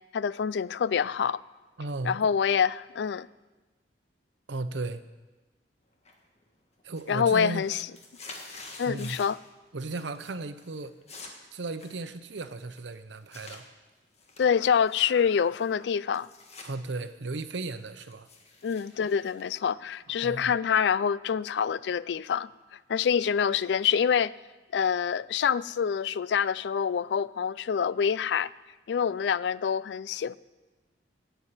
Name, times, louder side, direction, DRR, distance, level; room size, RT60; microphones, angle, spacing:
voice 1, 0.1-1.4 2.0-3.3 7.1-7.8 8.8-9.4 14.4-16.3 18.6-22.5 22.9-24.3 24.7-28.5 28.9-30.4, left 7 dB, 70° left, 19 dB, 0.3 m, -26 dB
voice 2, 1.8-2.1 4.5-5.0 6.8-7.7 8.8-9.2 9.7-11.0 11.5-13.6 16.6-18.3 20.2-20.5, right 3 dB, 80° right, 11 dB, 0.8 m, -35 dB
sound 1, 6.1-6.5 6.8-9.5 9.8-10.3 10.6-13.6 14.1-16.7 17.1-20.2, left 3 dB, 35° left, 1.7 m, -49 dB
12.5 x 8.1 x 8.9 m, 1.2 s
head